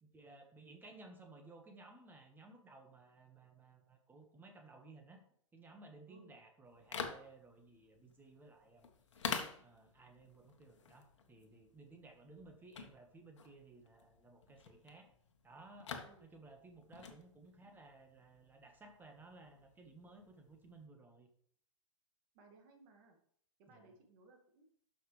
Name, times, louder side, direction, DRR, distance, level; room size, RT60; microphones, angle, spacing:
voice 1, 0.0-5.2 5.5-8.9 9.5-15.1 15.4-15.9 16.2-21.3 23.7-23.9, right 3 dB, 10° right, 4 dB, 1.5 m, -58 dB
sound 1, 6.7-20.9, left 6 dB, 65° left, 1.4 m, -49 dB
voice 2, 22.3-23.2 23.6-24.6, right 3 dB, 40° right, 3 dB, 2.2 m, -63 dB
12.0 x 5.8 x 3.4 m, 0.64 s
figure-of-eight pair, 105°, 16 cm